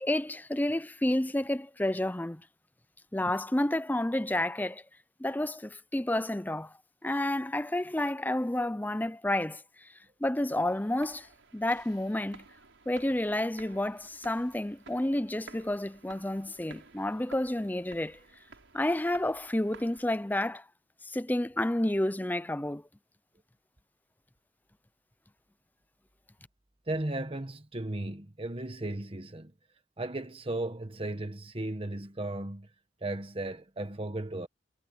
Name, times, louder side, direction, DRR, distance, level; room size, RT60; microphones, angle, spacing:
voice 1, 0.0-2.4 3.1-4.8 5.2-6.7 7.0-9.6 10.2-11.3 11.5-12.4 12.9-18.2 18.7-20.6 21.0-22.8, left 1 dB, 10° left, 0.5 m, -30 dB
sound 1, 10.4-20.5, right 4 dB, 90° right, 5.8 m, -54 dB
voice 2, 26.9-29.5 30.0-32.7 33.0-34.5, right 2 dB, 30° right, 1.3 m, -35 dB
head